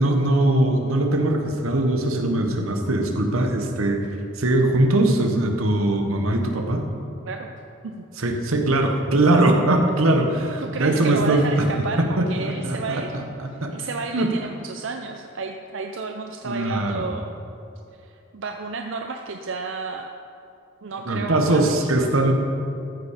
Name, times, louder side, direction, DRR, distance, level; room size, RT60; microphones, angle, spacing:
voice 1, 0.0-4.0 4.4-6.8 8.2-11.7 12.0-13.7 14.1-14.3 16.4-17.0 21.1-22.3, right 1 dB, 85° right, 4 dB, 1.3 m, -21 dB
voice 2, 10.6-13.2 13.5-17.4 18.0-20.1 20.8-21.9, right 4 dB, 60° right, 4 dB, 0.5 m, -32 dB
14.0 x 7.2 x 5.1 m, 2.8 s
head